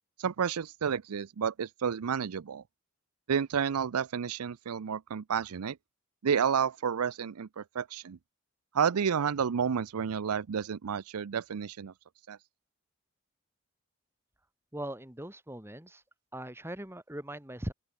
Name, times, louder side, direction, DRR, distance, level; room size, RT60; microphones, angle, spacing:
voice 1, 0.2-2.6 3.3-5.8 6.2-8.2 8.7-11.9 12.3-12.4, right 7 dB, 90° right, 0.5 m, -30 dB
voice 2, 14.7-16.0 16.3-17.7, right 1 dB, 10° right, 1.9 m, -40 dB
open air
head